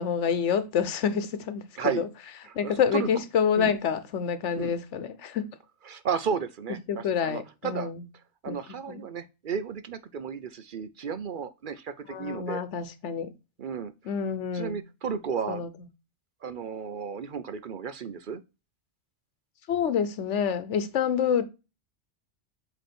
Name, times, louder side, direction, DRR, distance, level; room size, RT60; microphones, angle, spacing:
voice 1, 0.0-2.1 2.5-5.5 6.9-8.0 8.5-8.6 8.9-9.0 12.1-13.3 14.0-14.8 15.5-15.7 19.7-21.4, left 7 dB, 85° left, 1.1 m, -27 dB
voice 2, 2.5-3.1 3.6-3.7 4.6-4.7 5.9-7.9 8.4-12.6 13.6-13.9 14.5-15.7 16.4-18.4, right 6 dB, 55° right, 0.7 m, -33 dB
8.0 x 3.2 x 4.3 m
omnidirectional pair, 1.2 m